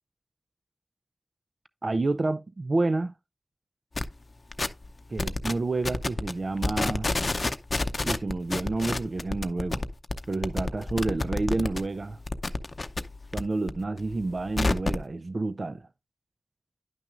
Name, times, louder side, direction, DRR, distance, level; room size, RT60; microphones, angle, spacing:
voice 1, 1.8-3.1 5.1-7.1 8.0-9.8 10.3-12.2 13.3-15.9, right 2 dB, 65° right, 0.4 m, -29 dB
sound 1, 3.9-4.1 4.5-4.9 5.2-5.5 5.8-6.3 6.6-11.8 12.1-13.4 13.7-15.0, left 2 dB, 60° left, 0.6 m, -28 dB
10.5 x 5.9 x 2.4 m
wide cardioid pair, 60°, 0 cm